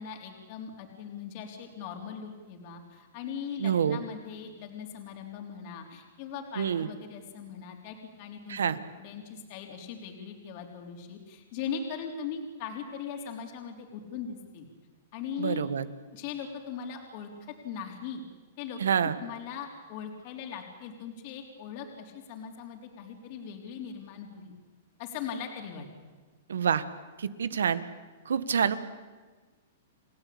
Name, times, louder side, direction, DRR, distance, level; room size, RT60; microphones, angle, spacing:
voice 1, 0.0-8.6 9.0-14.7 15.1-15.7 16.1-17.3 17.6-18.2 18.6-24.5 25.0-25.9, left 7 dB, 50° left, 2 dB, 4.0 m, -40 dB
voice 2, 3.6-4.0 6.6-6.9 8.5-8.8 15.4-15.8 18.8-19.2 26.5-26.8 27.2-27.8 28.2-28.8, right 7 dB, 85° right, 13 dB, 1.6 m, -27 dB
30.0 x 16.0 x 8.8 m, 1.3 s
hypercardioid pair, 125°, 0 cm